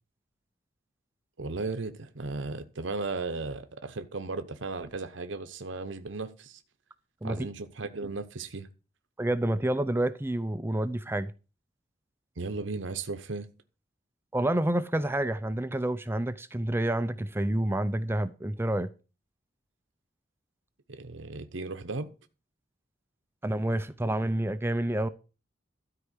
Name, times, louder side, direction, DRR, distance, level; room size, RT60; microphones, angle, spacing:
voice 1, 1.4-6.6 7.2-8.7 12.4-13.5 20.9-22.1, right 3 dB, 70° right, 0.9 m, -36 dB
voice 2, 9.2-11.3 14.3-18.9 23.4-25.1, right 1 dB, 10° right, 0.5 m, -28 dB
13.0 x 4.8 x 8.1 m
head